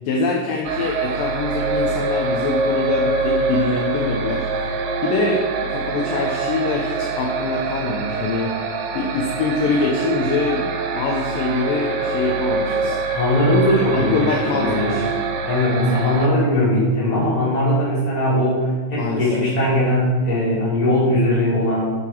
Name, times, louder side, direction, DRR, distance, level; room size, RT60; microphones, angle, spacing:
voice 1, 0.1-4.7 5.0-8.5 8.9-10.7 10.9-13.0 13.9-15.1 19.0-19.4, left 3 dB, 75° left, 0 dB, 2.2 m, -24 dB
sound 1, 0.7-16.3, right 4 dB, 85° right, 3.0 m, -25 dB
voice 2, 13.1-15.0 15.4-21.9, left 1 dB, 10° left, -8 dB, 2.8 m, -19 dB
10.5 x 6.8 x 4.5 m, 1.4 s
omnidirectional pair, 4.7 m